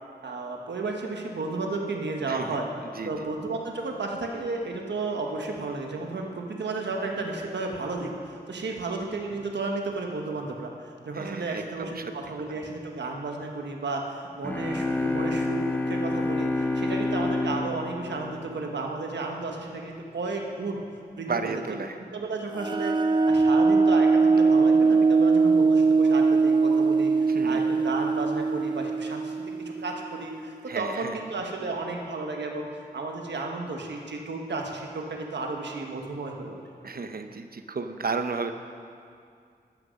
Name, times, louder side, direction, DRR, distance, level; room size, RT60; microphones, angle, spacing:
voice 1, 0.2-2.7 3.0-20.8 21.2-21.6 22.1-24.1 24.3-32.7 32.9-36.6, right 3 dB, 90° right, 1 dB, 1.2 m, -33 dB
voice 2, 11.2-12.0 21.3-21.9 27.3-27.6 30.7-31.1 36.8-38.5, right 4 dB, 60° right, 8 dB, 0.8 m, -32 dB
sound 1, 14.4-19.1, left 2 dB, 10° left, 1.0 m, -28 dB
sound 2, 22.6-30.0, right 4 dB, 25° right, 0.5 m, -21 dB
13.0 x 6.1 x 6.4 m, 2.3 s
cardioid pair, 45°, 18 cm